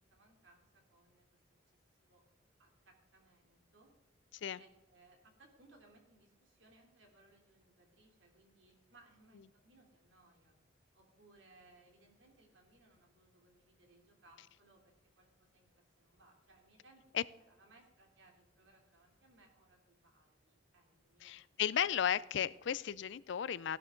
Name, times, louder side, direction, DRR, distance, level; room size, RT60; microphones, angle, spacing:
voice 1, 0.1-1.2 2.0-2.2 2.6-3.9 4.6-10.6 10.9-17.0 17.5-21.3, right 2 dB, 85° right, 2 dB, 3.2 m, -66 dB
voice 2, 21.2-23.8, left 9 dB, 70° left, 20 dB, 0.4 m, -34 dB
15.5 x 11.0 x 3.8 m, 0.99 s
head